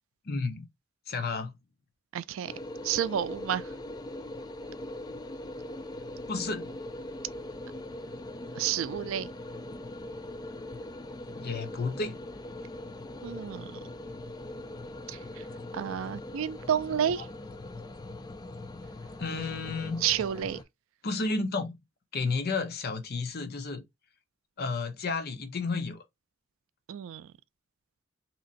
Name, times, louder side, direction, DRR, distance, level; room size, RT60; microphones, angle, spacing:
voice 1, 0.3-0.7 1.1-1.5 6.3-6.7 11.4-12.2 19.2-20.1 21.0-21.7 22.1-23.8 24.6-26.0, left 3 dB, 50° left, 0.6 m, -32 dB
voice 2, 2.1-2.5 2.8-3.7 8.5-9.3 13.2-13.8 15.1-15.5 15.7-17.3 20.0-20.6 26.9-27.3, right 9 dB, 75° right, 0.3 m, -30 dB
sound 1, 2.5-20.6, left 1 dB, 20° left, 0.3 m, -41 dB
2.9 x 2.5 x 3.9 m
head